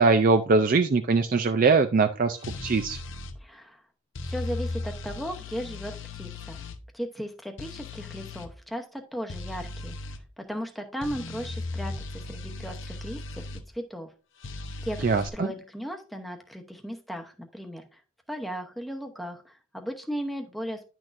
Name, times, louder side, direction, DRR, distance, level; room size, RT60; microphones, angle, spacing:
voice 1, 0.0-3.0 15.0-15.5, right 4 dB, 40° right, 8 dB, 0.4 m, -22 dB
sound 1, 2.4-3.4 4.2-6.8 7.6-8.5 9.3-10.2 11.0-13.6 14.4-15.3, left 2 dB, 60° left, 0.8 m, -37 dB
voice 2, 3.4-3.8 4.2-6.6 6.9-10.0 10.4-11.9 12.2-13.4 13.7-14.1 14.8-18.0 18.3-20.8, equal, ahead, 3 dB, 0.9 m, -36 dB
10.5 x 6.2 x 2.6 m, 0.35 s
head